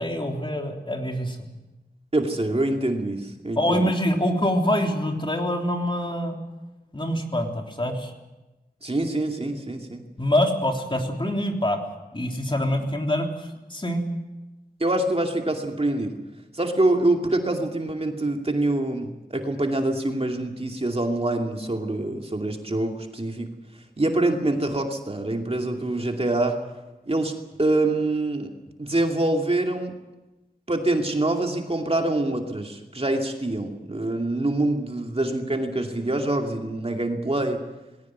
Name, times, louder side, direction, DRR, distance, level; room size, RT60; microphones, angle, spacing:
voice 1, 0.0-1.4 3.6-6.4 6.9-8.1 10.2-11.8 12.1-14.0, left 1 dB, 30° left, 2 dB, 3.4 m, -25 dB
voice 2, 2.1-3.9 8.8-10.0 14.8-16.1 16.5-23.5 24.0-26.6 27.1-27.3 27.6-28.5 28.8-29.9 30.7-37.6, right 2 dB, 35° right, 2 dB, 2.5 m, -25 dB
20.5 x 17.0 x 9.4 m, 1.1 s
wide cardioid pair, 75°, 17 cm